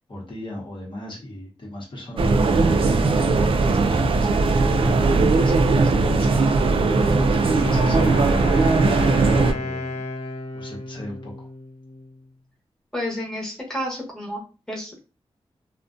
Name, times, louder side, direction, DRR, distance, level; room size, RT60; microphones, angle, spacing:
voice 1, 0.0-10.1 10.5-11.5, left 1 dB, 50° left, -4 dB, 0.9 m, -37 dB
sound 1, 2.2-9.5, right 3 dB, 60° right, 0.3 m, -19 dB
Wind instrument woodwind instrument, 6.5-12.2, left 2 dB, 75° left, 0.5 m, -33 dB
voice 2, 12.9-14.4 14.7-15.0, equal, 5° left, -3 dB, 0.9 m, -30 dB
2.5 x 2.1 x 2.5 m, 0.33 s
wide cardioid pair, 75°, 10 cm